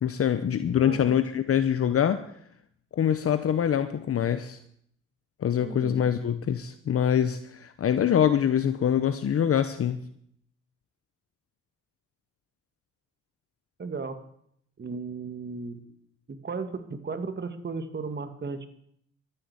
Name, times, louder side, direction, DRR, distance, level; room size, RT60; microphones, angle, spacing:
voice 1, 0.0-2.2 3.0-4.6 5.4-10.0, left 9 dB, 50° left, 11 dB, 0.9 m, -24 dB
voice 2, 0.8-1.2 5.6-6.0 13.8-14.2 14.8-15.9 16.3-18.7, right 4 dB, 35° right, 9 dB, 2.0 m, -35 dB
13.0 x 10.0 x 8.2 m, 0.69 s
cardioid pair, 90°, 30 cm